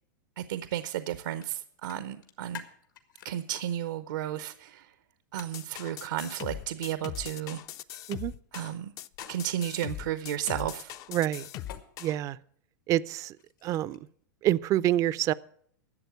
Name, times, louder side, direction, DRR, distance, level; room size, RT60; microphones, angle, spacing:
voice 1, 0.4-2.6 3.2-4.9 5.3-7.6 8.5-8.9 9.3-10.9, right 11 dB, 75° right, 12 dB, 0.8 m, -33 dB
sound 1, 1.4-1.5 1.8-3.6 5.4-5.6 9.1-9.7 11.4-11.8 13.2-14.1, left 10 dB, 80° left, 1.8 m, -47 dB
sound 2, 5.5-12.2, left 12 dB, 35° left, 0.4 m, -40 dB
voice 2, 11.1-11.5 12.0-12.4 12.9-13.4 13.6-14.0 14.4-15.3, right 13 dB, 30° right, 19 dB, 0.4 m, -27 dB
12.0 x 7.6 x 8.1 m, 0.63 s
hypercardioid pair, 130°, 11 cm